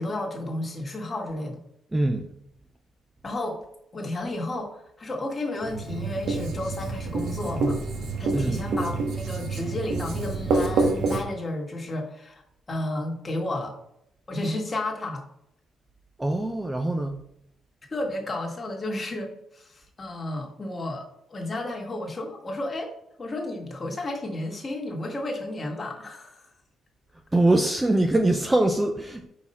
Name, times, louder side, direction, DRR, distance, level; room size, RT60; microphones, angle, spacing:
voice 1, 0.0-1.6 3.2-3.6 3.9-7.8 8.2-12.4 12.7-13.7 14.3-15.2 17.9-22.9 23.2-26.4, left 1 dB, 25° left, 1 dB, 1.5 m, -32 dB
voice 2, 1.9-2.3 8.3-8.6 16.2-17.2 27.3-29.3, right 2 dB, 10° right, 5 dB, 0.5 m, -23 dB
Writing, 5.6-11.2, right 3 dB, 75° right, 1.4 m, -27 dB
5.5 x 4.5 x 4.3 m, 0.76 s
cardioid pair, 115°, 0 cm